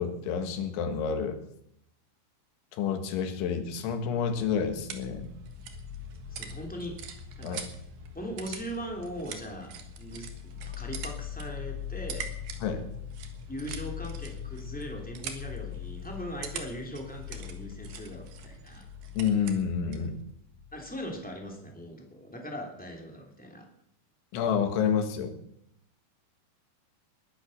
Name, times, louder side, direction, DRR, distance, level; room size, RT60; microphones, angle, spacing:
voice 1, 0.0-1.4 2.7-5.3 7.4-7.6 12.6-12.8 19.2-20.2 24.3-25.4, left 7 dB, 70° left, 7 dB, 3.8 m, -29 dB
sound 1, 4.2-21.3, left 9 dB, 40° left, 4.4 m, -42 dB
sound 2, 4.4-20.1, right 8 dB, 60° right, 2.4 m, -45 dB
voice 2, 6.2-7.6 8.1-12.3 13.5-18.8 20.7-23.7, equal, 5° left, 1 dB, 0.9 m, -40 dB
21.0 x 9.9 x 6.5 m, 0.75 s
omnidirectional pair, 5.9 m